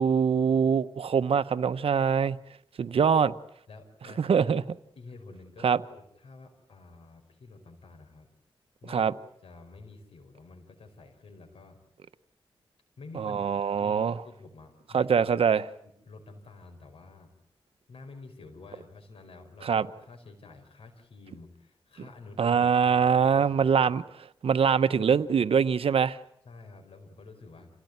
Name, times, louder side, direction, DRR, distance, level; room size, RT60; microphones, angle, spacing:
voice 1, 0.0-2.4 2.8-3.3 4.2-4.6 5.6-5.8 8.9-9.1 13.2-14.1 14.9-15.7 19.6-19.9 22.4-24.0 24.4-26.2, right 6 dB, 85° right, 0.9 m, -23 dB
voice 2, 3.7-4.5 4.9-8.3 8.8-9.1 9.4-11.8 13.0-13.4 13.8-15.2 15.8-17.3 17.9-23.9 26.4-27.7, left 3 dB, 90° left, 5.0 m, -49 dB
27.5 x 16.5 x 9.5 m
cardioid pair, 65°, 10 cm